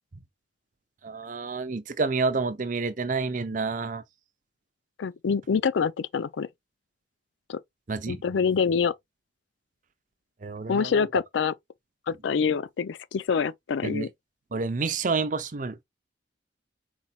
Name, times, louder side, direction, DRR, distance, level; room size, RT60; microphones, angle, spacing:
voice 1, 1.0-4.0 7.9-8.2 10.4-11.1 13.8-14.1 14.5-15.8, right 4 dB, 45° right, 0.6 m, -29 dB
voice 2, 5.0-6.5 7.5-7.6 8.1-8.9 10.7-11.5 12.1-14.1, left 6 dB, 85° left, 0.4 m, -26 dB
4.4 x 4.2 x 2.3 m
head